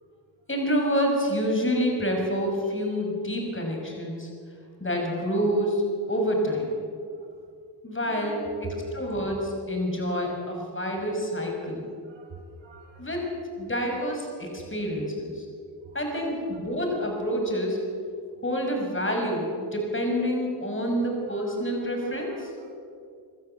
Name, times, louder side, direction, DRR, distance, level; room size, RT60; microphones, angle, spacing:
voice 1, 0.5-4.3 4.8-5.8 6.1-6.8 7.8-11.8 13.0-13.3 13.6-15.4 15.9-17.8 18.4-22.5, equal, 25° left, 1 dB, 6.6 m, -27 dB
voice 2, 8.0-8.6 12.1-13.0 15.9-16.1 21.8-21.9 22.3-22.7, right 1 dB, 60° right, -1 dB, 7.0 m, -45 dB
26.5 x 12.5 x 8.4 m, 2.3 s
cardioid pair, 60°, 49 cm